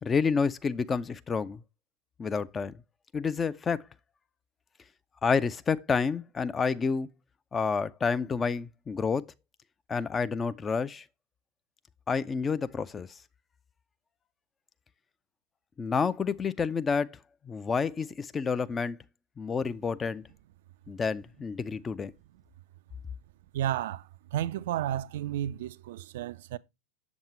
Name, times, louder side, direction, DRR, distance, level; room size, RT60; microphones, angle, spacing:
voice 1, 0.0-1.6 2.2-2.8 3.1-3.8 5.2-7.1 7.5-9.2 9.9-11.0 12.1-13.1 15.8-17.2 17.4-19.0 19.4-20.2 20.9-22.1, left 5 dB, 20° left, 0.4 m, -29 dB
voice 2, 23.5-24.0 24.3-26.6, right 12 dB, 55° right, 0.3 m, -32 dB
7.1 x 7.1 x 3.1 m
figure-of-eight pair, 90°, 0 cm